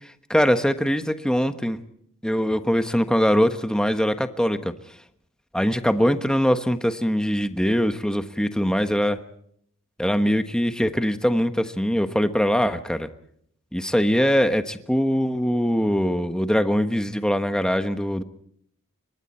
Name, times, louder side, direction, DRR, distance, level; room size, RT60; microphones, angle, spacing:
voice 1, 0.3-1.8 2.2-4.7 5.5-9.2 10.0-13.1 13.7-18.2, equal, 5° left, 8 dB, 1.2 m, -22 dB
29.5 x 24.0 x 4.5 m, 0.68 s
head